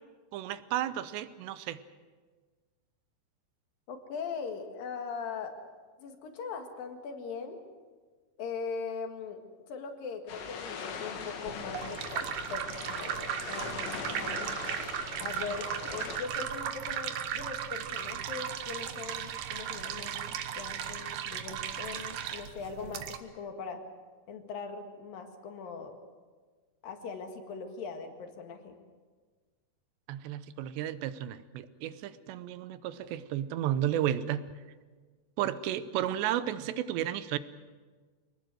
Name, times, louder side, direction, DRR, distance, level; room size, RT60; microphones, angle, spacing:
voice 1, 0.3-1.8 30.1-34.5 35.4-37.4, right 11 dB, 90° right, 13 dB, 3.1 m, -33 dB
voice 2, 3.9-5.6 6.0-7.6 8.4-9.4 9.7-12.7 13.0-14.5 15.2-23.8 24.3-25.9 26.8-28.7, left 5 dB, 60° left, 5 dB, 3.5 m, -40 dB
sound 1, 10.3-16.2, left 5 dB, 90° left, 4.4 m, -41 dB
sound 2, 11.5-23.2, right 9 dB, 65° right, 2.4 m, -36 dB
24.5 x 19.0 x 7.8 m, 1.4 s
omnidirectional pair, 4.8 m